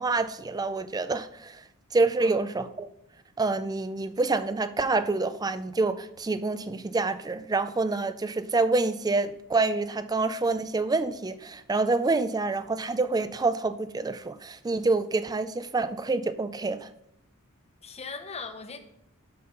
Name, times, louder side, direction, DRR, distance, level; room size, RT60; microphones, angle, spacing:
voice 1, 0.0-1.6 1.9-2.9 3.4-16.9, right 3 dB, 15° right, 0.4 m, -27 dB
voice 2, 2.2-2.6 17.8-18.8, left 4 dB, 30° left, 0.8 m, -40 dB
7.6 x 5.7 x 5.6 m
head